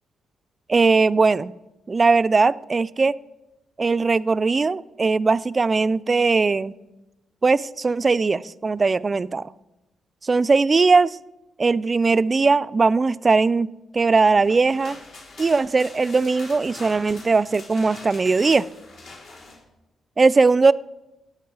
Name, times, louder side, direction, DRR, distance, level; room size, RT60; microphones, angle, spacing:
voice 1, 0.7-1.5 1.9-3.2 3.8-6.7 7.4-9.4 10.2-11.2 11.6-15.0 15.4-18.7 20.2-20.7, right 4 dB, 30° right, 16 dB, 0.3 m, -19 dB
sound 1, 14.3-19.6, left 3 dB, 75° left, 3.7 m, -43 dB
15.5 x 8.7 x 4.7 m, 0.99 s
cardioid pair, 90°, 0 cm